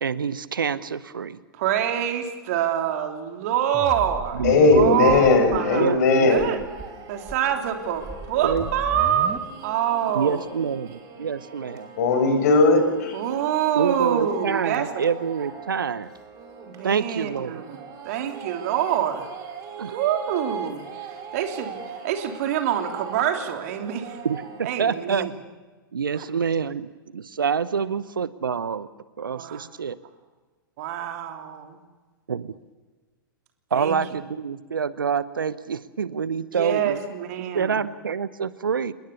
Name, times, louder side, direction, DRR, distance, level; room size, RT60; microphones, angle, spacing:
voice 1, 0.0-1.4 4.4-5.1 5.7-6.5 8.4-8.7 10.1-11.9 13.7-16.1 16.8-17.6 19.8-20.0 24.2-24.4 24.8-25.3 25.9-28.9 29.2-30.0 32.3-32.5 33.7-37.0 37.5-38.9, right 6 dB, 70° right, 1.0 m, -26 dB
voice 2, 1.5-4.4 4.8-6.0 6.3-6.6 7.1-10.4 11.2-11.3 13.1-15.0 16.7-19.3 19.9-24.2 24.6-25.3 26.1-26.3 29.3-29.6 30.8-31.8 33.7-34.0 36.5-37.8, right 9 dB, 45° right, 3.3 m, -26 dB
sound 1, 3.7-5.6 5.9-6.0 6.3-6.8 7.2-9.4, right 2 dB, 10° right, 2.0 m, -36 dB
voice 3, 4.4-6.4 12.0-13.2, left 3 dB, 50° left, 5.9 m, -18 dB
sound 2, 6.2-24.9, right 6 dB, 30° right, 5.5 m, -41 dB
28.0 x 21.0 x 7.1 m
figure-of-eight pair, 105°, 12 cm